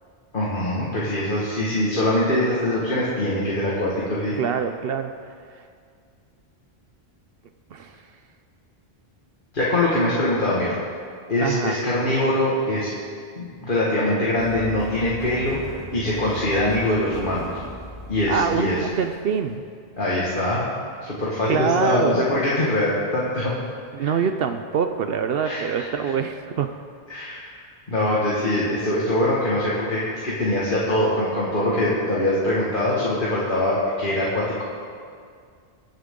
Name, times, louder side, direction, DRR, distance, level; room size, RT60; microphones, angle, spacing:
voice 1, 0.3-4.4 9.5-10.8 11.3-12.9 13.4-17.6 18.1-18.8 20.0-20.7 21.0-23.5 24.0-24.1 25.4-26.1 27.1-27.6 27.9-34.6, left 1 dB, 50° left, -7 dB, 1.9 m, -23 dB
voice 2, 4.4-5.1 7.7-7.9 11.4-11.8 18.3-19.6 21.5-22.2 23.9-26.8, right 6 dB, 65° right, 8 dB, 0.8 m, -24 dB
sound 1, 14.4-19.5, left 1 dB, ahead, 2.4 m, -38 dB
22.0 x 7.4 x 3.7 m, 2.1 s
omnidirectional pair, 1.1 m